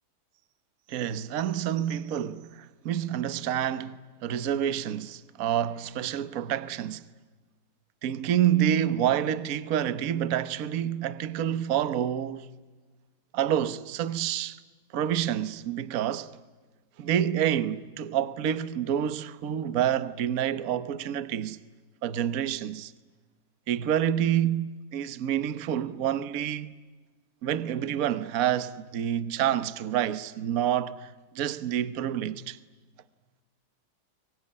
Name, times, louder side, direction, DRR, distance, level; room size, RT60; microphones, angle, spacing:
voice 1, 0.9-7.1 8.0-12.5 13.3-14.6 14.9-16.3 17.0-21.6 22.0-22.9 23.7-26.7 27.4-32.6, right 10 dB, 50° right, 1.2 m, -28 dB
24.5 x 23.5 x 9.9 m
omnidirectional pair, 2.2 m